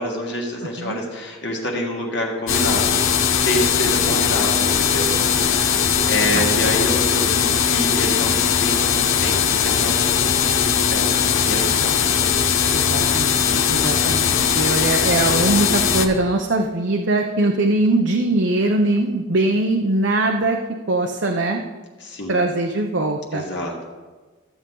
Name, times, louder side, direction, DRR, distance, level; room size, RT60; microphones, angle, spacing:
voice 1, 0.0-5.1 6.1-12.0 13.4-13.9 22.0-22.4 23.3-23.7, left 1 dB, 55° left, -1 dB, 1.7 m, -27 dB
sound 1, 2.5-16.1, left 7 dB, 75° left, 0.8 m, -19 dB
voice 2, 6.3-6.8 12.7-20.6 20.9-21.6 22.3-23.4, right 2 dB, 60° right, 2 dB, 0.7 m, -21 dB
14.0 x 7.9 x 3.8 m, 1.3 s
head